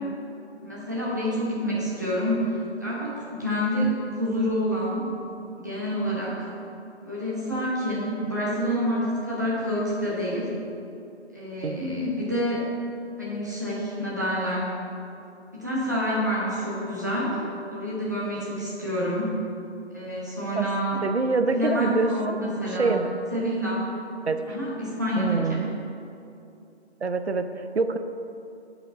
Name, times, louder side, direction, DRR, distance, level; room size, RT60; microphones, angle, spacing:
voice 1, 0.6-5.1 5.6-6.5 7.0-10.5 11.3-12.7 13.2-14.7 15.5-17.4 17.7-19.3 19.9-21.0 21.5-22.9 23.3-23.9 24.5-25.6, equal, 15° right, -7 dB, 1.0 m, -28 dB
voice 2, 21.0-22.4 22.8-23.1 24.3-24.4 25.2-25.7 27.0-28.0, right 3 dB, 70° right, 8 dB, 0.7 m, -25 dB
13.5 x 5.0 x 4.0 m, 2.7 s
figure-of-eight pair, 170°, 34 cm